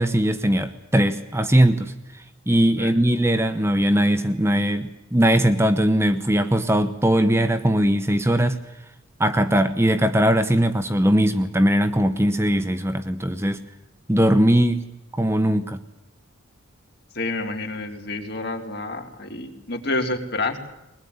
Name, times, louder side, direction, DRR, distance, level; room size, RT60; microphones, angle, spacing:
voice 1, 0.0-8.6 9.2-13.6 14.1-14.8 15.1-15.8, right 1 dB, 15° right, 9 dB, 1.0 m, -20 dB
voice 2, 17.1-20.6, left 2 dB, 50° left, 3 dB, 3.6 m, -28 dB
22.0 x 20.5 x 9.6 m, 0.92 s
head